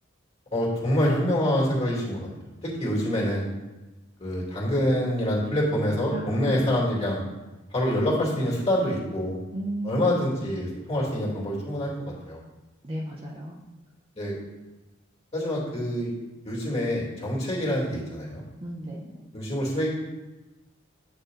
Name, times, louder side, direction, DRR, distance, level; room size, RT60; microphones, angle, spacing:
voice 1, 0.5-2.3 2.6-3.5 4.2-7.2 7.7-9.4 9.8-12.4 14.1-14.4 15.3-16.1 16.4-18.4 19.3-19.9, left 1 dB, 30° left, -5 dB, 2.7 m, -26 dB
voice 2, 6.1-6.7 9.5-10.2 12.8-13.6 18.6-19.1, right 1 dB, 25° right, -3 dB, 0.8 m, -34 dB
8.6 x 6.6 x 4.0 m, 1.1 s
head